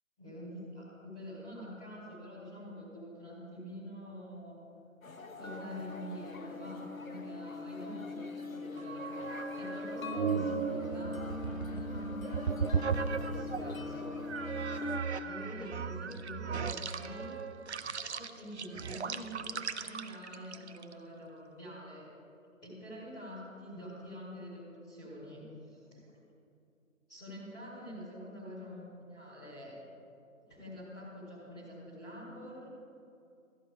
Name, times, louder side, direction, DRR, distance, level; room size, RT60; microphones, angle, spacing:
voice 1, 0.2-4.6 5.3-14.6 15.2-17.4 17.9-22.1 22.6-25.8 27.1-29.7 30.5-32.7, equal, 10° left, -10 dB, 2.0 m, -46 dB
sound 1, 5.0-15.0, left 3 dB, 75° left, 1.1 m, -41 dB
sound 2, 8.8-13.7 14.3-20.9, right 6 dB, 55° right, 0.5 m, -36 dB
13.0 x 9.7 x 4.8 m, 2.7 s
figure-of-eight pair, 155°, 41 cm